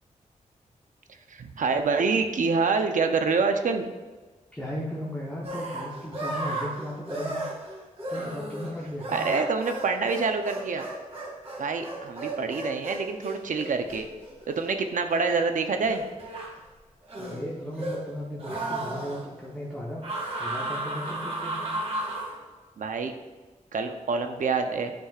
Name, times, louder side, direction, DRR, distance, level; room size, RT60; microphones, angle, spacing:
voice 1, 1.3-3.9 9.1-10.9 11.6-14.1 14.5-16.1 22.8-23.1 23.7-24.9, right 4 dB, 75° right, 6 dB, 0.7 m, -26 dB
voice 2, 4.5-7.5 8.1-9.3 17.2-20.0 20.4-21.7, equal, 10° left, -6 dB, 1.1 m, -36 dB
sound 1, 5.4-15.4 15.8-16.5 17.0-18.1 18.4-19.2 20.0-22.3, right 2 dB, 45° right, 2.3 m, -34 dB
11.5 x 6.2 x 2.5 m, 1.3 s
wide cardioid pair, 175°, 13 cm